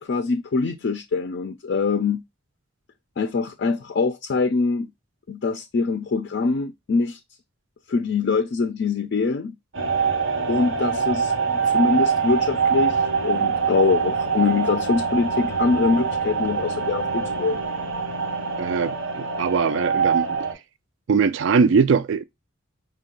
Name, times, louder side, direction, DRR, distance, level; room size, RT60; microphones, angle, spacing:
voice 1, 0.0-2.2 3.2-4.9 5.3-7.2 7.9-9.5 10.5-17.6, left 4 dB, 55° left, 0.4 m, -24 dB
sound 1, 9.7-20.5, right 5 dB, 85° right, 1.1 m, -24 dB
voice 2, 18.6-20.3 21.1-22.2, right 5 dB, 65° right, 0.3 m, -21 dB
5.2 x 2.3 x 3.7 m
head